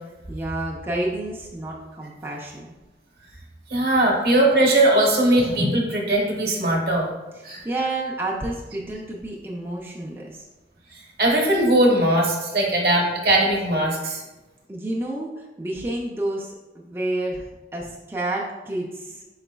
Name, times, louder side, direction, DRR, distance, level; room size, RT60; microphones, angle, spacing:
voice 1, 0.3-2.7 4.1-4.2 7.3-10.4 14.7-19.2, right 1 dB, 15° right, -4 dB, 0.4 m, -30 dB
voice 2, 3.7-7.1 7.4-7.6 11.2-14.2, right 1 dB, 55° right, -1 dB, 0.8 m, -19 dB
5.2 x 4.0 x 2.2 m, 1.1 s
head